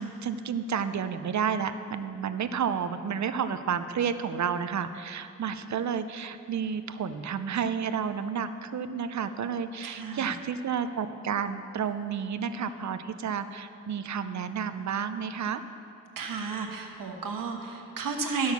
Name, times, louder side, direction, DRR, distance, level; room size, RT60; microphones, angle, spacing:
voice 1, 0.0-15.6, right 7 dB, 60° right, 11 dB, 0.5 m, -31 dB
voice 2, 9.8-10.3 16.2-18.5, right 4 dB, 85° right, 2 dB, 1.3 m, -32 dB
12.5 x 6.3 x 7.0 m, 2.5 s
wide cardioid pair, 150°, 32 cm